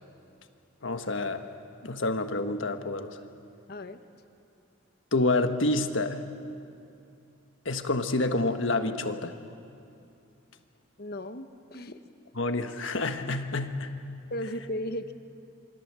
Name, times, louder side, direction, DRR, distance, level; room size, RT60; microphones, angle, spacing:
voice 1, 0.8-1.4 1.8-3.2 5.1-6.2 7.6-9.3 12.3-14.0, left 2 dB, 65° left, 8 dB, 1.5 m, -28 dB
voice 2, 3.7-4.0 11.0-12.0 14.3-15.1, left 1 dB, 50° left, 9 dB, 1.2 m, -36 dB
27.5 x 24.5 x 7.6 m, 2.6 s
head